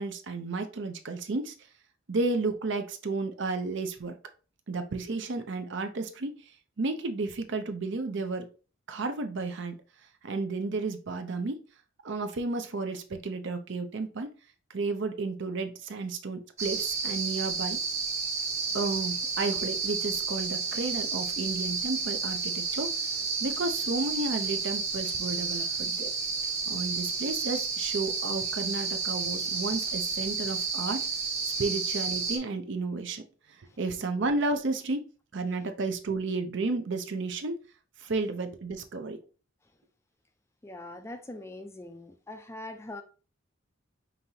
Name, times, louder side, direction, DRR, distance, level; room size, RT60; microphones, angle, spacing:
voice 1, 0.0-1.5 2.1-4.2 4.7-6.5 6.8-8.5 8.9-9.8 10.2-11.6 12.0-14.3 14.7-17.8 18.7-23.0 23.4-26.1 26.7-31.0 31.4-33.2 33.6-35.0 35.3-37.6 38.0-39.2, right 3 dB, 60° right, 0.6 m, -32 dB
sound 1, 16.6-32.4, right 5 dB, 35° right, 0.9 m, -31 dB
voice 2, 40.6-43.0, left 2 dB, 15° left, 0.3 m, -42 dB
5.2 x 2.9 x 2.7 m
head